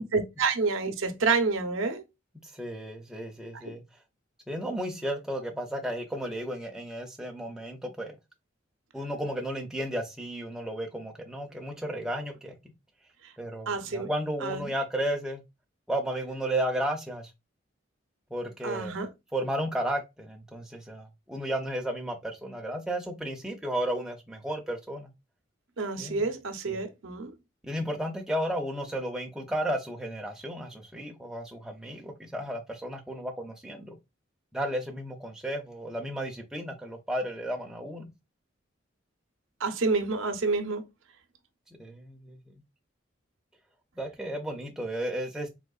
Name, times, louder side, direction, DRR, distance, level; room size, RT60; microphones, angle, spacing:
voice 1, 0.1-2.0 3.5-3.6 13.7-14.1 14.4-14.7 18.6-19.1 25.8-27.3 39.6-40.8, right 4 dB, 80° right, 0.6 m, -28 dB
voice 2, 2.4-3.8 4.5-8.2 8.9-12.5 13.4-15.4 15.9-17.3 18.3-19.0 19.3-25.1 26.0-26.3 26.7-26.8 27.6-33.9 34.5-38.1 41.7-42.5 44.0-45.5, right 1 dB, 5° right, 0.4 m, -33 dB
3.6 x 2.8 x 2.3 m
head